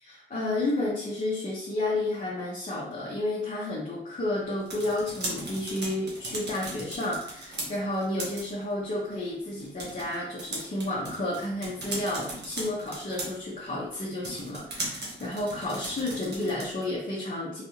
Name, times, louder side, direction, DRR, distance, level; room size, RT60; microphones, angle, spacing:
voice 1, 0.0-17.6, left 1 dB, 40° left, -7 dB, 1.4 m, -31 dB
sound 1, 4.4-17.0, right 2 dB, 55° right, 1.6 m, -39 dB
4.2 x 3.3 x 3.0 m, 0.69 s
cardioid pair, 65°, 21 cm